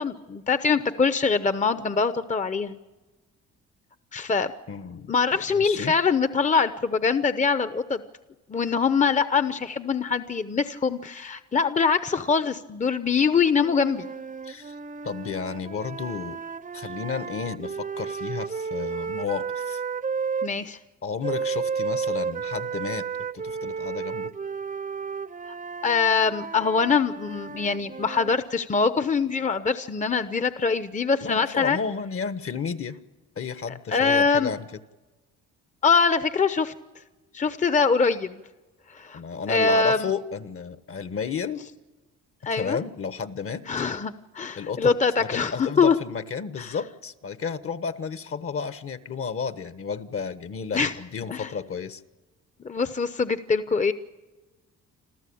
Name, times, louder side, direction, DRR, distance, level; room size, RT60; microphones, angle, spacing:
voice 1, 0.0-2.8 4.1-4.5 5.1-8.0 8.5-14.1 20.4-20.8 25.8-31.8 33.9-34.5 35.8-36.7 37.3-38.4 38.9-39.2 39.5-40.1 42.4-42.8 43.7-46.0 46.6-46.8 50.7-50.9 51.3-51.5 52.6-53.9, left 5 dB, 25° left, 12 dB, 0.9 m, -23 dB
voice 2, 4.7-5.1 5.5-5.9 14.4-14.7 15.0-16.4 16.7-19.8 21.0-23.1 23.3-24.3 31.2-33.0 33.4-34.7 39.1-41.6 42.5-43.6 44.6-52.0, left 6 dB, 45° left, 12 dB, 1.3 m, -32 dB
sound 1, 13.6-20.5 21.2-28.4, right 6 dB, 25° right, 0.8 m, -33 dB
27.5 x 14.0 x 8.7 m, 1.2 s
cardioid pair, 90°, 30 cm